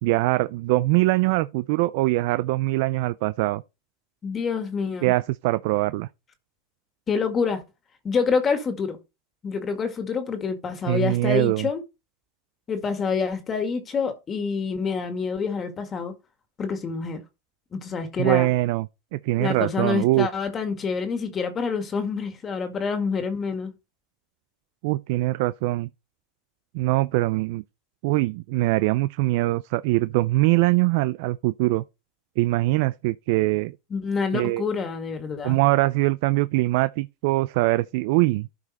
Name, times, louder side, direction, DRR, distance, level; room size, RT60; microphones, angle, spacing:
voice 1, 0.0-3.6 5.0-6.1 10.9-11.7 18.2-18.9 19.1-20.3 24.8-25.9 26.7-27.6 28.0-31.8 32.4-33.8 34.3-34.6 35.4-38.5, right 19 dB, 65° right, 0.4 m, -22 dB
voice 2, 4.2-5.1 7.1-7.6 8.0-9.0 9.4-11.8 12.7-16.1 16.6-17.2 17.7-18.5 19.4-23.7 33.9-35.6, left 5 dB, 25° left, 1.9 m, -27 dB
12.0 x 5.1 x 4.2 m
supercardioid pair, 120°, 0 cm